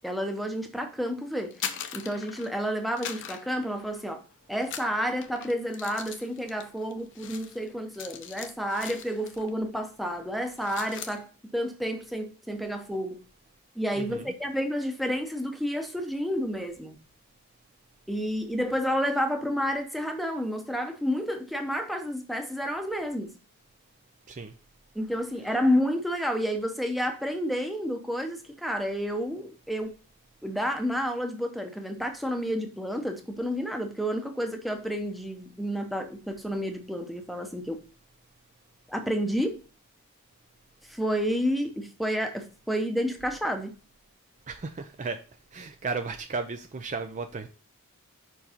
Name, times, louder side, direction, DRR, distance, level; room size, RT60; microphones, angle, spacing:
voice 1, 0.0-4.2 4.5-11.3 11.5-13.2 13.8-17.0 18.1-23.3 24.9-29.9 30.4-37.8 38.9-39.6 40.9-43.7, equal, ahead, 0.7 m, -30 dB
sound 1, 1.4-2.6 3.0-4.2 4.6-9.5 9.8-10.1 10.4-11.2, left 8 dB, 55° left, 0.6 m, -40 dB
voice 2, 14.0-14.3 24.3-24.5 44.5-45.2 45.5-47.5, right 4 dB, 35° right, 0.4 m, -34 dB
5.3 x 4.6 x 4.3 m
head